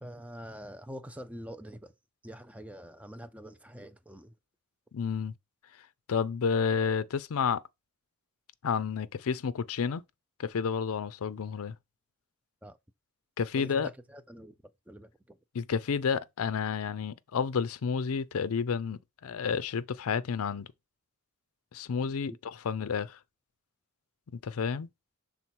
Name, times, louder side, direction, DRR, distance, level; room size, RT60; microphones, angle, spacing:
voice 1, 0.0-1.9 2.2-4.3 12.6-12.8 13.5-14.5 14.9-15.4 22.3-22.4, equal, 5° right, 0.5 m, -45 dB
voice 2, 4.9-5.3 6.1-7.6 8.6-10.0 10.4-11.8 13.4-13.9 15.5-20.7 21.7-23.2 24.4-24.9, left 6 dB, 70° left, 0.5 m, -30 dB
5.8 x 3.6 x 4.5 m
head